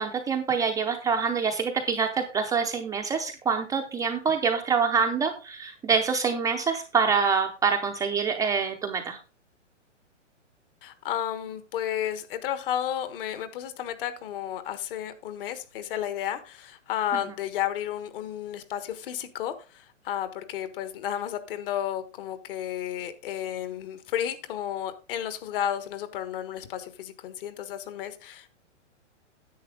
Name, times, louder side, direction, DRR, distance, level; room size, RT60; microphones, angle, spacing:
voice 1, 0.0-9.2, right 5 dB, 10° right, 2 dB, 0.5 m, -26 dB
voice 2, 10.8-28.5, left 10 dB, 45° left, 11 dB, 1.4 m, -32 dB
10.5 x 7.8 x 3.8 m, 0.32 s
hypercardioid pair, 130°, 37 cm